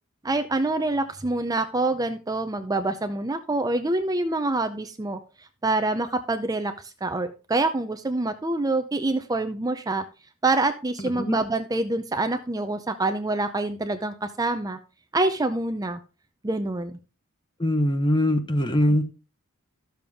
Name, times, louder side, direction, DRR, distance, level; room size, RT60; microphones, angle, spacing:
voice 1, 0.2-5.2 5.6-10.0 10.4-14.8 15.1-16.0 16.4-16.9, right 2 dB, 15° right, 8 dB, 0.5 m, -26 dB
voice 2, 17.6-19.0, left 1 dB, 20° left, 9 dB, 1.0 m, -22 dB
12.5 x 6.9 x 3.5 m, 0.33 s
head